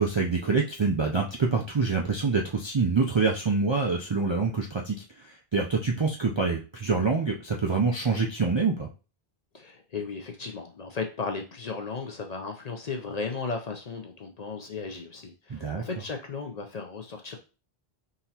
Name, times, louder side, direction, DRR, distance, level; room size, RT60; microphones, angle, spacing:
voice 1, 0.0-8.9 15.5-15.8, right 4 dB, 45° right, -1 dB, 0.4 m, -26 dB
voice 2, 9.5-17.4, left 4 dB, 50° left, 3 dB, 0.5 m, -35 dB
3.9 x 2.9 x 2.8 m, 0.33 s
omnidirectional pair, 1.0 m